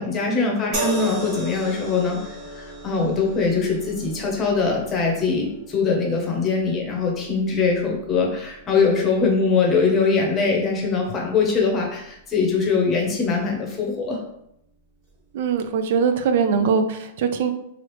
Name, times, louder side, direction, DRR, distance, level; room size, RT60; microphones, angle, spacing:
voice 1, 0.0-14.2 16.5-16.6, left 4 dB, 20° left, 0 dB, 0.8 m, -22 dB
sound 1, 0.7-14.1 15.0-15.2, equal, 40° right, 1.4 m, -37 dB
voice 2, 15.3-17.5, right 6 dB, 55° right, 8 dB, 0.4 m, -22 dB
3.3 x 2.4 x 3.0 m, 0.77 s
supercardioid pair, 155°, 0 cm